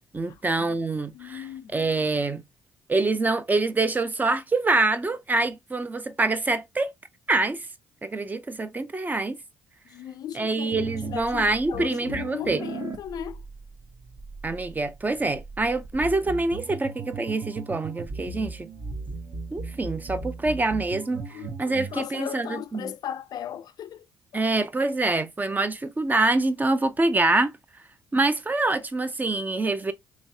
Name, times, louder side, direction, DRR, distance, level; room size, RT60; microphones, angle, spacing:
voice 1, 0.0-2.4 2.9-6.9 7.3-7.7 8.0-9.4 10.3-12.6 14.4-18.7 19.5-21.2 21.6-22.9 24.3-27.5 28.1-29.9, right 2 dB, 25° right, 0.5 m, -25 dB
voice 2, 1.1-1.7 9.9-13.4 21.3-24.0, left 10 dB, 60° left, 0.4 m, -37 dB
sound 1, 10.7-22.0, right 4 dB, 50° right, 0.8 m, -38 dB
3.0 x 2.8 x 2.6 m
hypercardioid pair, 55°, 7 cm